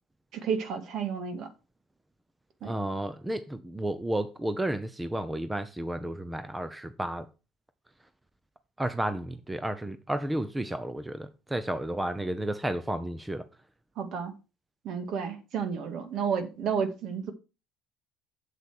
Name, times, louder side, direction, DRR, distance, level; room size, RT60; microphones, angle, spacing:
voice 1, 0.3-1.5 2.6-2.7 14.0-14.3 14.8-17.3, right 6 dB, 55° right, 2.0 m, -31 dB
voice 2, 2.6-7.3 8.8-13.5, right 1 dB, 10° right, 0.7 m, -32 dB
8.1 x 7.2 x 4.7 m
cardioid pair, 115°, 0 cm